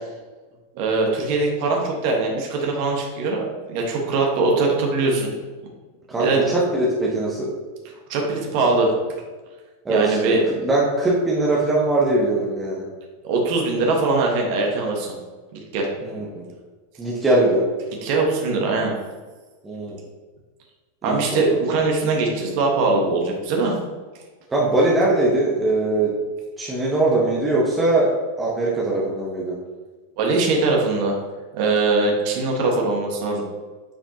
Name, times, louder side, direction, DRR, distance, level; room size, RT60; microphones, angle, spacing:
voice 1, 0.8-5.4 6.2-6.4 8.1-8.9 9.9-10.4 13.2-15.1 15.5-15.9 18.0-18.9 21.0-23.7 30.2-31.1 31.5-33.4, right 3 dB, 45° right, 0 dB, 1.4 m, -21 dB
voice 2, 6.1-7.5 9.8-12.8 16.0-16.4 17.0-17.7 19.6-20.0 21.0-21.6 24.5-26.1 26.6-29.5, right 2 dB, 15° right, -5 dB, 1.3 m, -21 dB
8.9 x 4.9 x 2.9 m, 1.3 s
figure-of-eight pair, 90°, 0 cm